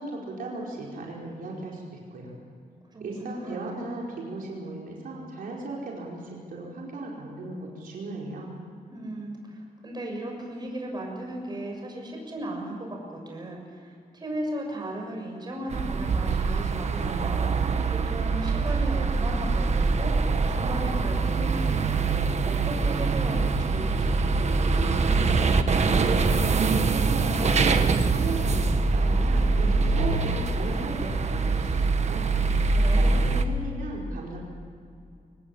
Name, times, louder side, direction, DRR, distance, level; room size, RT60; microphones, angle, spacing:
voice 1, 0.0-2.3 3.0-8.5 26.8-32.6 32.9-34.4, right 2 dB, 75° right, -3 dB, 4.9 m, -36 dB
voice 2, 2.9-3.7 8.9-20.2 20.5-22.0 22.4-25.6 32.7-33.2, right 1 dB, 30° right, 0 dB, 6.9 m, -36 dB
sound 1, 15.7-33.4, right 4 dB, 50° right, 1.5 m, -24 dB
24.5 x 19.0 x 8.7 m, 2.4 s
wide cardioid pair, 130°, 15 cm